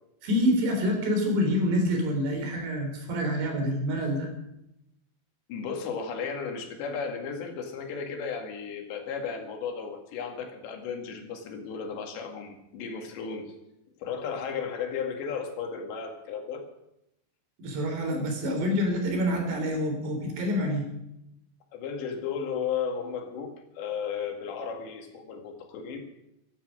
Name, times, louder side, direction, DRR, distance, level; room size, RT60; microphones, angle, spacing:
voice 1, 0.2-4.3 17.6-20.9, equal, 75° right, 4 dB, 5.5 m, -27 dB
voice 2, 5.5-13.5 14.0-16.6 21.7-26.1, left 6 dB, 85° left, 4 dB, 4.3 m, -34 dB
15.0 x 14.5 x 6.4 m, 0.84 s
omnidirectional pair, 4.9 m